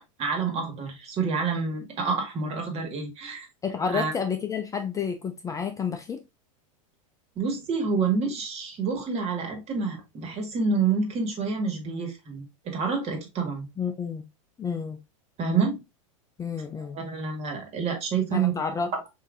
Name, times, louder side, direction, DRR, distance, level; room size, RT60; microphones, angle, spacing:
voice 1, 0.2-3.5 3.9-4.1 7.4-13.7 15.4-15.8 16.9-18.5, right 5 dB, 35° right, 1.6 m, -28 dB
voice 2, 3.6-6.2 13.8-14.2 14.6-15.0 16.4-17.0 18.3-18.9, left 6 dB, 20° left, 0.5 m, -30 dB
5.6 x 2.8 x 2.5 m
hypercardioid pair, 110°, 17 cm